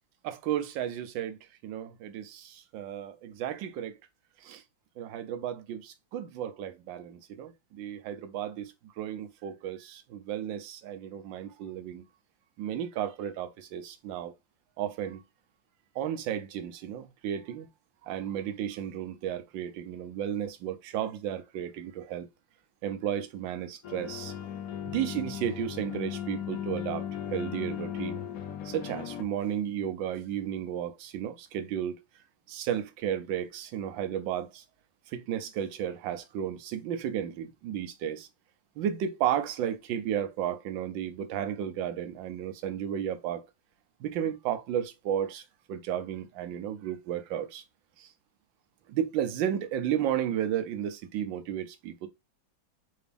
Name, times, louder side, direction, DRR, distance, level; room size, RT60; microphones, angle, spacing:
voice 1, 0.2-4.0 4.4-4.6 5.0-12.0 12.6-14.3 14.8-15.2 15.9-17.7 18.0-22.3 22.8-24.3 24.9-28.2 28.6-32.0 32.5-34.6 35.1-38.3 38.8-43.4 44.0-47.6 48.0-48.1 48.9-52.1, right 10 dB, 85° right, 1.4 m, -33 dB
sound 1, 23.8-29.2, left 9 dB, 70° left, 0.8 m, -37 dB
4.0 x 2.7 x 3.4 m
omnidirectional pair, 2.0 m